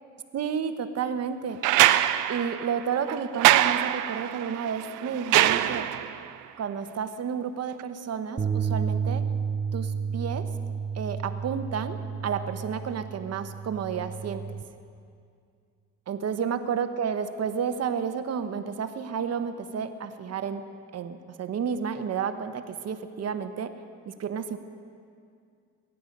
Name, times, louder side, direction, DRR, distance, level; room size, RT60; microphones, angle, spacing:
voice 1, 0.3-1.6 2.3-5.9 6.6-9.3 9.7-10.5 10.9-14.4 16.1-20.6 20.9-23.7 24.1-24.6, right 7 dB, 55° right, 9 dB, 1.0 m, -31 dB
sound 1, 1.6-6.2 7.8-7.9, right 14 dB, 90° right, 0.5 m, -23 dB
sound 2, 8.4-14.6, right 6 dB, 25° right, 1.0 m, -31 dB
22.5 x 10.0 x 5.3 m, 2.3 s
cardioid pair, 90°, 30 cm